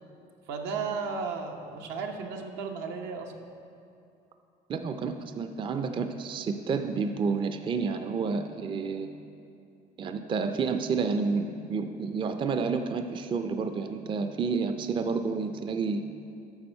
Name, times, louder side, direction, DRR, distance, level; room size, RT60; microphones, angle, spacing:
voice 1, 0.5-3.3, right 5 dB, 85° right, 3 dB, 0.9 m, -34 dB
voice 2, 4.7-9.2 10.0-16.0, right 5 dB, 30° right, 8 dB, 0.4 m, -30 dB
9.6 x 6.2 x 4.4 m, 2.6 s
cardioid pair, 115°, 18 cm